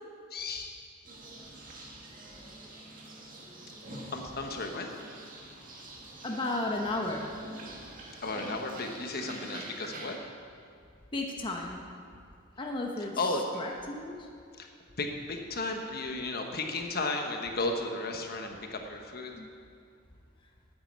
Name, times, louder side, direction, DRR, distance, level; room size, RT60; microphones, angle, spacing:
voice 1, 0.3-0.8 3.9-4.9 8.2-10.2 13.0-13.4 14.6-14.7 15.0-19.3, left 3 dB, 50° left, 3 dB, 1.1 m, -34 dB
sound 1, 1.0-10.2, right 1 dB, 40° right, 1.9 m, -46 dB
voice 2, 6.2-7.2 11.1-11.8 12.6-14.2 19.3-19.5, left 2 dB, 25° left, 0 dB, 1.0 m, -34 dB
9.5 x 9.4 x 8.5 m, 2.3 s
head